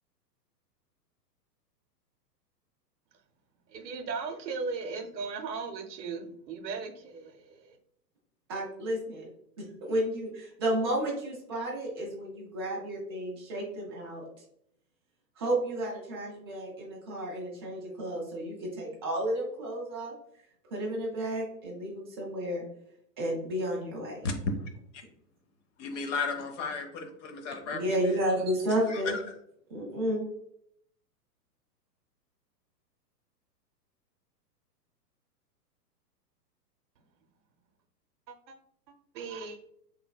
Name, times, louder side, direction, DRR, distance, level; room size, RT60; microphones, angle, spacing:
voice 1, 3.7-7.8 38.3-38.5 39.1-39.6, right 4 dB, 85° right, 5 dB, 0.7 m, -37 dB
voice 2, 8.5-9.3 9.8-14.3 15.4-20.1 20.7-22.6 23.2-24.3 27.7-29.2 29.7-30.2, right 1 dB, 15° right, -3 dB, 0.4 m, -32 dB
voice 3, 25.8-28.2 28.9-29.0, left 4 dB, 45° left, 5 dB, 0.7 m, -35 dB
3.2 x 3.1 x 2.2 m, 0.72 s
hypercardioid pair, 130°, 50 cm